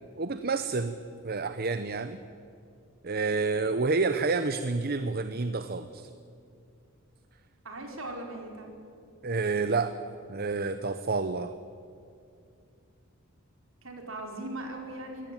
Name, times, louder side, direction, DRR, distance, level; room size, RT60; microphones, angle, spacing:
voice 1, 0.2-1.0 1.2-2.2 3.0-6.1 9.2-10.0 10.3-11.5, right 4 dB, 45° right, 11 dB, 0.8 m, -29 dB
voice 2, 7.6-8.7 13.8-15.3, right 1 dB, 65° right, 2 dB, 4.5 m, -39 dB
23.0 x 18.0 x 9.2 m, 2.5 s
head